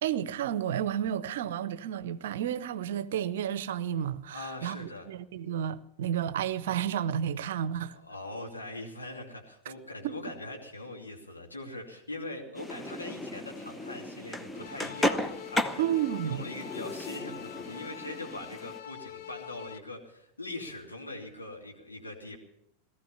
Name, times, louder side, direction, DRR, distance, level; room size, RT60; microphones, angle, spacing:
voice 1, 0.0-7.9 9.7-9.8 10.0-10.2 15.8-16.5, right 10 dB, 55° right, 0.7 m, -31 dB
voice 2, 4.3-5.1 7.9-15.8 16.2-22.4, left 2 dB, 80° left, 2.8 m, -42 dB
sound 1, 12.5-18.8, left 1 dB, 10° left, 0.8 m, -35 dB
sound 2, 14.5-19.8, left 13 dB, 50° left, 0.7 m, -45 dB
18.5 x 13.5 x 5.6 m
figure-of-eight pair, 90°, 0 cm